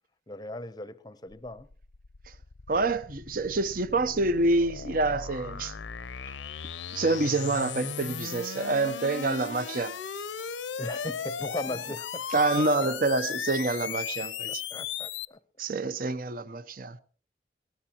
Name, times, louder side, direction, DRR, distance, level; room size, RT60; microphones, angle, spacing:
voice 1, 0.3-1.7 10.8-12.3 12.8-12.9 14.5-15.4, left 1 dB, 20° left, 0.7 m, -38 dB
sound 1, 1.3-15.3, left 7 dB, 85° left, 0.7 m, -37 dB
voice 2, 2.7-5.8 6.2-6.3 6.9-10.0 12.3-14.6 15.6-17.0, right 2 dB, 50° right, 0.7 m, -27 dB
22.0 x 18.0 x 2.9 m
head